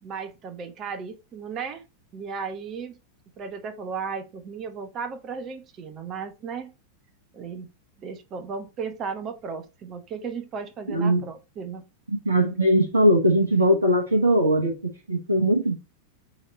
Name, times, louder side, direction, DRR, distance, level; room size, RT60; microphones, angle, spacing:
voice 1, 0.0-1.8 2.1-3.0 3.4-6.7 7.3-7.7 8.0-11.9, right 5 dB, 30° right, 0.9 m, -35 dB
voice 2, 10.9-11.2 12.1-15.7, equal, 75° right, 1.1 m, -20 dB
3.9 x 3.3 x 4.0 m
figure-of-eight pair, 90°, 0 cm